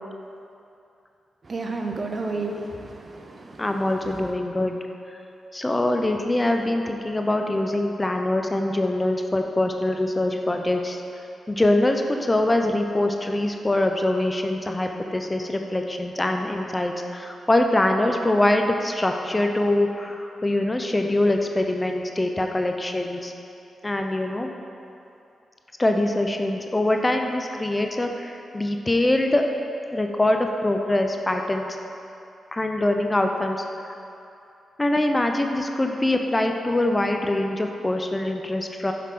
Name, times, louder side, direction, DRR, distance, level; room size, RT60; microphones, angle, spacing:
voice 1, 1.5-3.6, right 3 dB, 45° right, 3 dB, 0.7 m, -31 dB
voice 2, 3.6-4.8 5.5-11.0 11.5-23.3 23.8-24.5 25.8-29.4 29.9-31.6 32.5-33.9 34.8-38.9, left 1 dB, 25° left, 4 dB, 0.6 m, -23 dB
7.4 x 5.6 x 3.8 m, 2.7 s
supercardioid pair, 45°, 0 cm